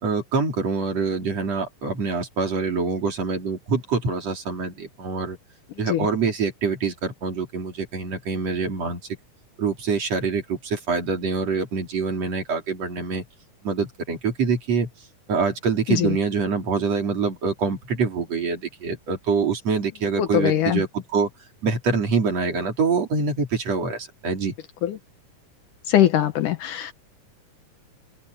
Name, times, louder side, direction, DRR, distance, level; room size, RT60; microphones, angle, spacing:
voice 1, 0.0-5.4 5.8-9.0 9.6-13.2 13.6-14.9 15.3-21.3 21.6-24.5, right 5 dB, 45° right, 4.4 m, -25 dB
voice 2, 20.2-20.8 24.8-25.0 25.9-26.9, left 11 dB, 70° left, 2.5 m, -21 dB
open air
omnidirectional pair, 4.1 m